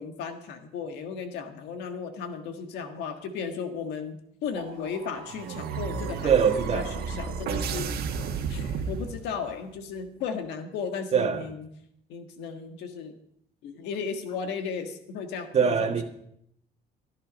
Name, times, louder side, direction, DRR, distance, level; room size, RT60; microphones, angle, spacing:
voice 1, 0.0-8.1 8.5-11.7 12.1-13.2 13.6-16.0, left 6 dB, 85° left, 1.6 m, -35 dB
sound 1, 4.5-9.6, right 6 dB, 65° right, 1.5 m, -33 dB
voice 2, 6.2-7.0 11.1-11.4 15.5-16.0, right 7 dB, 40° right, 1.7 m, -23 dB
14.5 x 10.5 x 5.2 m
cardioid pair, 110°, 17 cm